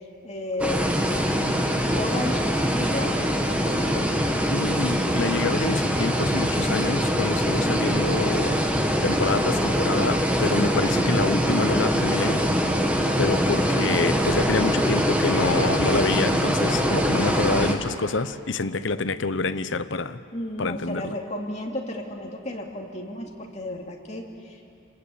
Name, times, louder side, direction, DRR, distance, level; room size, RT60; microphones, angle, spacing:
voice 1, 0.2-1.6 1.9-3.2 3.5-4.1 20.3-24.6, left 1 dB, 35° left, 0 dB, 2.6 m, -33 dB
sound 1, 0.6-17.7, equal, 5° right, 1.6 m, -23 dB
voice 2, 4.5-8.6 9.0-12.4 13.2-20.2 20.6-21.1, left 3 dB, 70° left, 13 dB, 0.8 m, -27 dB
28.0 x 20.5 x 8.5 m, 2.6 s
head